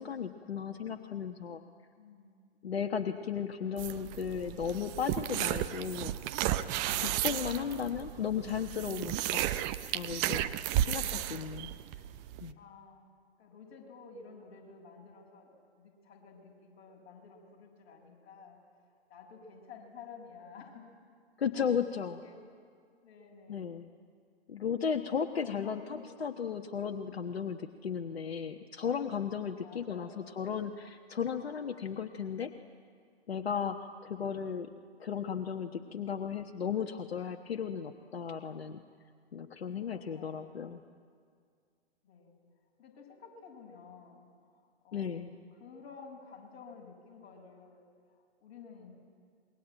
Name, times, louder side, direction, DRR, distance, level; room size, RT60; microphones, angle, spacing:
voice 1, 0.0-1.6 2.6-6.1 7.0-9.5 9.9-11.7 12.4-12.6 21.4-22.2 23.5-23.9 24.5-25.8 26.2-32.5 33.3-34.7 35.0-38.8 39.3-40.8 44.9-45.3, left 7 dB, 65° left, 6 dB, 1.3 m, -35 dB
voice 2, 2.0-2.4 3.2-3.6 10.8-11.3 12.6-13.1 13.4-20.9 21.5-22.4 23.0-23.7 25.3-26.1 26.4-26.6 26.9-27.2 29.6-30.6 33.8-34.4 39.6-40.7 42.0-42.4 42.8-48.9, left 5 dB, 25° left, -2 dB, 6.3 m, -53 dB
sound 1, 3.8-12.5, right 13 dB, 20° right, 0.6 m, -33 dB
27.0 x 22.0 x 9.0 m, 2.1 s
figure-of-eight pair, 125°, 33 cm